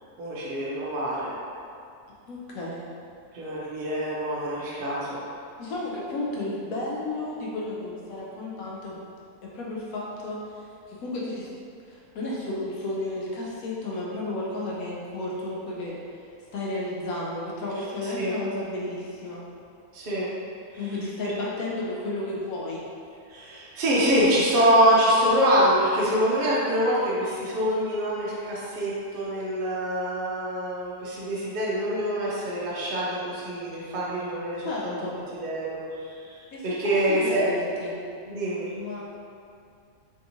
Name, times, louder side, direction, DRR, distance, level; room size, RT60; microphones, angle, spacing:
voice 1, 0.2-1.3 3.3-5.2 18.2-18.3 19.9-20.3 23.3-35.0 35.4-37.4 38.3-38.7, equal, 55° right, -7 dB, 0.6 m, -25 dB
voice 2, 2.3-2.8 5.6-9.0 9.4-11.5 11.8-19.4 20.8-22.8 34.6-35.2 36.5-38.0 38.7-39.0, left 2 dB, 70° left, -5 dB, 1.0 m, -33 dB
3.4 x 2.8 x 2.7 m, 2.4 s
omnidirectional pair, 1.6 m